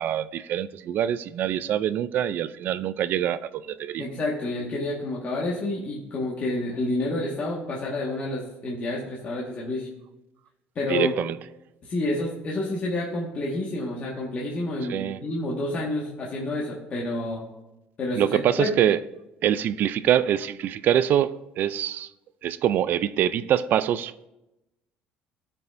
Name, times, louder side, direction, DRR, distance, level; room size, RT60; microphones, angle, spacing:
voice 1, 0.0-4.0 10.9-11.4 14.9-15.2 18.2-19.0 19.4-22.1 22.4-24.3, right 10 dB, 50° right, 0.4 m, -24 dB
voice 2, 4.0-9.9 10.7-11.1 11.8-17.4 18.0-18.7, left 2 dB, 35° left, 1.6 m, -29 dB
16.5 x 5.5 x 2.6 m
cardioid pair, 135°, 4 cm